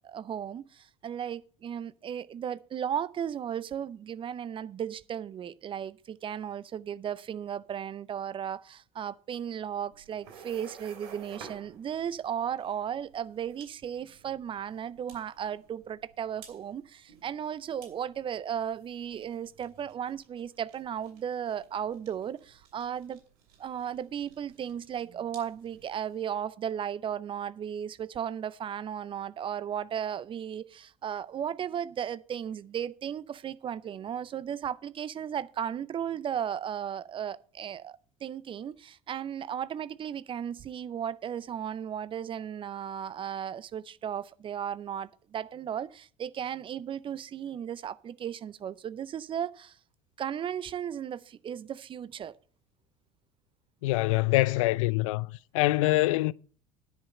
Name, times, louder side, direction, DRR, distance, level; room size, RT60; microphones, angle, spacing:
voice 1, 0.0-23.2 23.6-49.8 50.2-52.4, right 9 dB, 30° right, 0.5 m, -35 dB
sound 1, 9.9-26.2, right 6 dB, 60° right, 2.8 m, -54 dB
voice 2, 53.8-56.3, left 19 dB, 60° left, 0.4 m, -25 dB
10.0 x 5.3 x 7.6 m
figure-of-eight pair, 70°, 19 cm